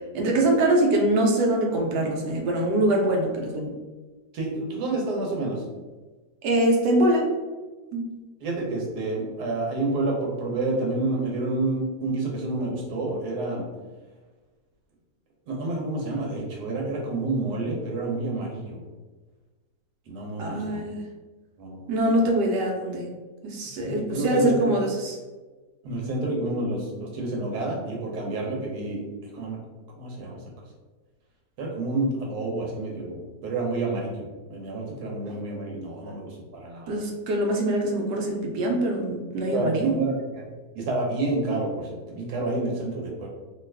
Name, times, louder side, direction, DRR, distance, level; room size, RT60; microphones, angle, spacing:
voice 1, 0.1-3.7 6.4-7.3 7.9-8.1 20.4-21.0 21.9-23.1 23.4-25.2 36.9-40.1, right 1 dB, 90° right, 1 dB, 1.2 m, -23 dB
voice 2, 4.3-5.6 8.4-13.6 15.5-18.8 20.1-20.8 21.6-22.2 23.8-24.7 25.8-29.6 30.0-30.4 31.6-34.1 34.5-37.0 39.5-40.5 40.7-43.3, right 2 dB, 75° right, -1 dB, 1.3 m, -29 dB
2.9 x 2.4 x 3.3 m, 1.3 s
omnidirectional pair, 1.8 m